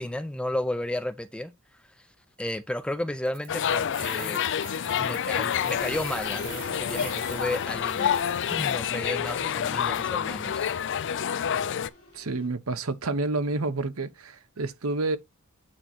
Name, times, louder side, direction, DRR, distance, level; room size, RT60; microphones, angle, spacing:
voice 1, 0.0-1.5 2.4-4.4 5.0-8.1 8.5-10.8, left 1 dB, 5° left, 0.5 m, -33 dB
sound 1, 3.3-8.8, right 12 dB, 40° right, 0.6 m, -45 dB
sound 2, 3.5-11.9, left 8 dB, 60° left, 0.4 m, -28 dB
sound 3, 5.7-12.5, left 2 dB, 85° left, 1.6 m, -44 dB
voice 2, 12.1-15.2, right 3 dB, 75° right, 0.9 m, -29 dB
8.9 x 3.0 x 4.3 m
head